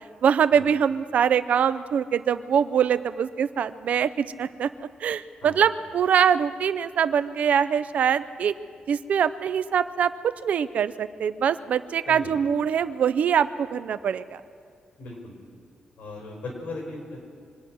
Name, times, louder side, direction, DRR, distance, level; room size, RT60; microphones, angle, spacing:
voice 1, 0.2-4.7 5.0-8.5 8.9-10.1 10.4-14.4, right 8 dB, 60° right, 14 dB, 0.5 m, -23 dB
voice 2, 12.0-12.4 15.0-15.3 16.0-17.2, left 2 dB, 85° left, -1 dB, 5.0 m, -38 dB
25.0 x 9.3 x 6.2 m, 2.2 s
wide cardioid pair, 170°, 3 cm